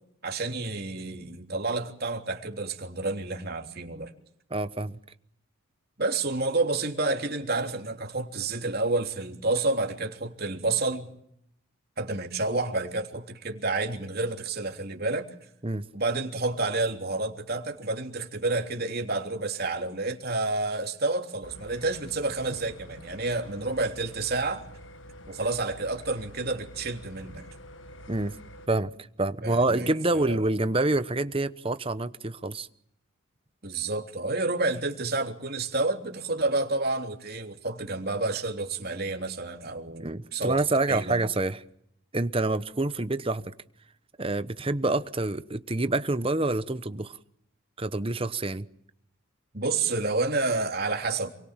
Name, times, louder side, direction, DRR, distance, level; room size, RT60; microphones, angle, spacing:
voice 1, 0.2-4.1 6.0-11.1 12.0-15.3 15.9-24.7 25.3-27.5 29.4-30.4 33.6-40.6 40.9-41.2 49.5-51.3, right 3 dB, 45° right, 3.4 m, -29 dB
voice 2, 4.5-5.0 15.6-15.9 28.1-28.3 28.7-28.9 29.2-32.7 40.0-41.6 42.1-43.5 44.2-47.2 47.8-48.7, right 2 dB, 25° right, 1.0 m, -27 dB
sound 1, 21.4-28.7, equal, 60° left, 1.7 m, -47 dB
28.5 x 23.0 x 7.5 m
head